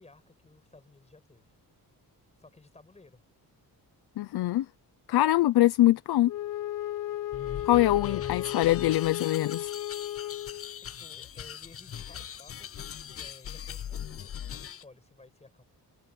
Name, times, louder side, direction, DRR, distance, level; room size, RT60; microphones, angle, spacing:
voice 1, 0.0-1.5 2.4-3.2 7.5-8.9 11.0-15.6, left 3 dB, 15° left, 6.4 m, -56 dB
voice 2, 4.2-4.7 5.1-6.3 7.7-9.7, left 15 dB, 80° left, 0.7 m, -23 dB
Wind instrument woodwind instrument, 6.2-10.9, left 13 dB, 60° left, 1.2 m, -35 dB
sound 1, 7.3-14.8, left 9 dB, 40° left, 0.5 m, -40 dB
wide cardioid pair, 180°, 38 cm